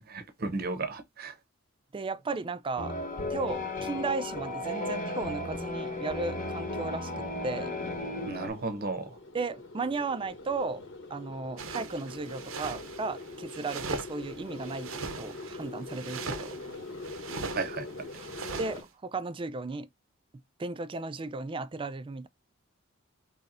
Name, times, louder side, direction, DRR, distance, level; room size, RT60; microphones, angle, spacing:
voice 1, 0.0-1.3 8.3-9.1 17.6-17.8, right 3 dB, 50° right, 0.7 m, -34 dB
voice 2, 1.9-2.9 3.3-7.7 9.3-10.8 11.1-14.9 15.2-16.6 18.6-19.9 20.6-22.3, right 3 dB, 25° right, 0.3 m, -35 dB
sound 1, 2.8-8.5, left 2 dB, 40° left, 1.0 m, -34 dB
sound 2, 4.4-18.8, left 2 dB, 65° left, 1.1 m, -45 dB
sound 3, 11.6-18.8, right 4 dB, 90° right, 0.7 m, -40 dB
4.1 x 3.1 x 2.5 m
head